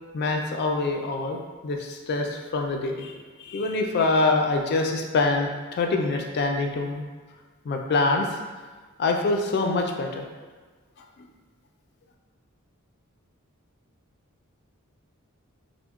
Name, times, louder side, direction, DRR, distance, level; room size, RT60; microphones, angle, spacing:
voice 1, 0.1-7.0 7.6-8.4 9.0-10.3 11.0-11.3, left 3 dB, 50° left, 3 dB, 0.3 m, -25 dB
3.6 x 2.1 x 2.3 m, 1.4 s
head